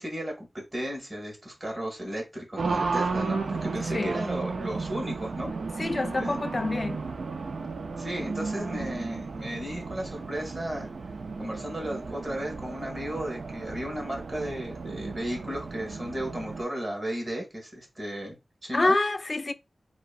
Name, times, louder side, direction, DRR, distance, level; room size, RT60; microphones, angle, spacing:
voice 1, 0.0-5.5 6.2-6.4 8.0-10.9 11.4-18.9, equal, 35° right, 1.5 m, -34 dB
Race car auto racing, 2.6-16.6, right 4 dB, 90° right, 0.3 m, -34 dB
voice 2, 5.8-7.0 18.7-19.5, left 2 dB, 45° left, 0.3 m, -27 dB
3.0 x 2.7 x 2.4 m
wide cardioid pair, 75°, 0 cm